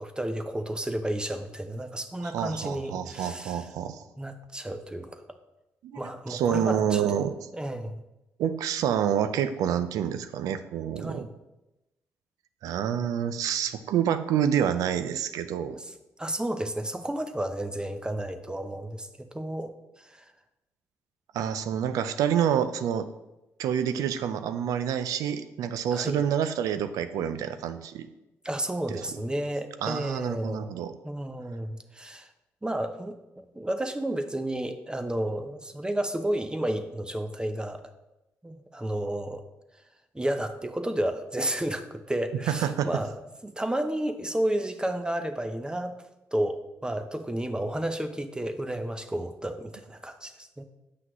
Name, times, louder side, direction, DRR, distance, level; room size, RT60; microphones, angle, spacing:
voice 1, 0.0-3.6 4.2-5.2 5.9-7.2 7.5-8.0 11.0-11.3 15.7-15.9 16.2-20.3 25.9-26.2 28.4-30.6 31.0-32.3 32.6-37.8 38.4-39.4 40.1-43.1 43.4-45.9 46.3-50.6, right 1 dB, 15° right, 8 dB, 0.7 m, -32 dB
voice 2, 2.2-4.0 5.8-7.4 8.4-11.3 12.6-15.8 21.3-23.1 23.6-28.1 28.9-29.1 29.8-30.9 42.5-42.9, right 9 dB, 80° right, 11 dB, 0.5 m, -28 dB
7.8 x 5.8 x 3.1 m, 0.97 s
supercardioid pair, 55°, 6 cm